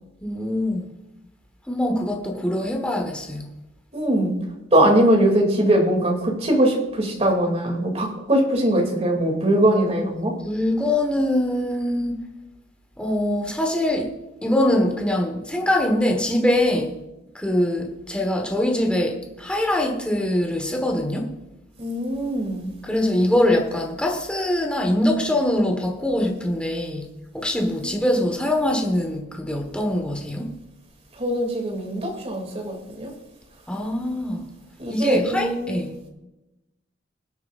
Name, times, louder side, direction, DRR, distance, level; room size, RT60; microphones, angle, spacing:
voice 1, 0.2-0.9 1.7-3.5 10.4-12.2 13.0-14.1 14.4-17.0 17.3-21.3 22.8-27.1 27.3-30.5 33.7-34.4 34.9-36.0, left 1 dB, 5° left, 2 dB, 1.4 m, -23 dB
voice 2, 3.9-4.4 4.7-10.4 21.8-22.7 27.8-28.0 31.2-33.1 34.8-35.8, right 1 dB, 35° right, 1 dB, 2.7 m, -21 dB
21.0 x 9.1 x 2.5 m, 0.95 s
head